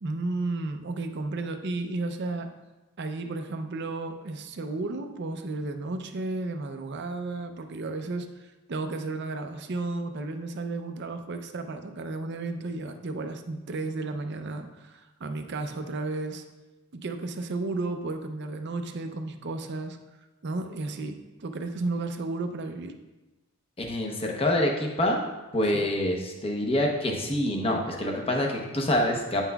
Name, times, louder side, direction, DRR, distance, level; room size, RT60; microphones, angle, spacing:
voice 1, 0.0-2.5 3.0-16.4 16.9-20.0 20.4-22.9 25.7-25.9, right 2 dB, 50° right, 6 dB, 0.5 m, -33 dB
voice 2, 23.8-25.2 25.5-29.4, left 1 dB, 25° left, 1 dB, 0.8 m, -26 dB
8.7 x 5.7 x 2.3 m, 1.1 s
head